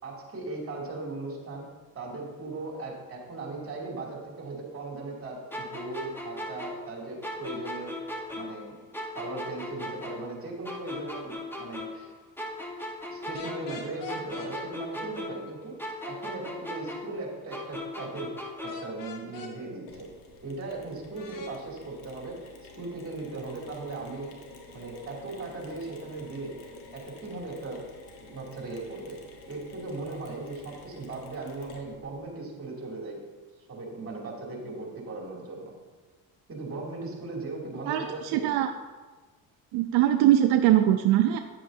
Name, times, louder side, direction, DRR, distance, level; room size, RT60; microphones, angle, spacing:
voice 1, 0.0-1.7 1.9-8.0 8.3-8.8 9.1-12.1 13.1-15.7 16.0-18.3 18.6-20.1 20.4-22.4 22.8-24.3 24.7-26.6 26.9-27.8 28.2-29.2 29.5-33.2 33.7-35.7 36.5-38.5, right 2 dB, 35° right, -1 dB, 2.6 m, -38 dB
sound 1, 5.5-8.7 8.9-12.1 12.4-15.5 15.8-18.9, left 1 dB, 5° left, 1.2 m, -38 dB
sound 2, 13.3-14.5 18.7-19.5 21.1-21.5, left 5 dB, 60° left, 1.3 m, -42 dB
Mechanisms, 19.9-32.2, left 3 dB, 80° left, 1.4 m, -50 dB
voice 2, 37.9-38.7 39.7-41.4, right 12 dB, 85° right, 7 dB, 0.5 m, -22 dB
9.6 x 7.6 x 2.7 m, 1.3 s
cardioid pair, 100°, 38 cm